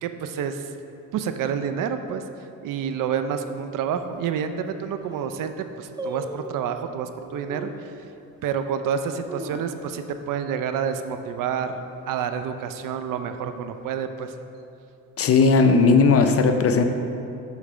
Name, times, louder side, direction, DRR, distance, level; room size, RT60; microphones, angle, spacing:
voice 1, 0.0-0.7 1.1-2.2 2.6-7.9 8.4-14.3, right 7 dB, 65° right, 8 dB, 0.5 m, -28 dB
sound 1, 4.0-4.1 4.7-4.8 5.0-5.4 6.0-6.7 7.5-7.9 8.4-8.5 9.0-10.2 10.5-10.6 10.9-11.3 11.7-12.0 12.6-13.4 13.7-13.8, right 1 dB, 10° right, 0.4 m, -37 dB
voice 2, 15.2-16.8, left 4 dB, 40° left, 7 dB, 0.5 m, -17 dB
8.2 x 3.3 x 4.9 m, 2.7 s
cardioid pair, 100°, 35 cm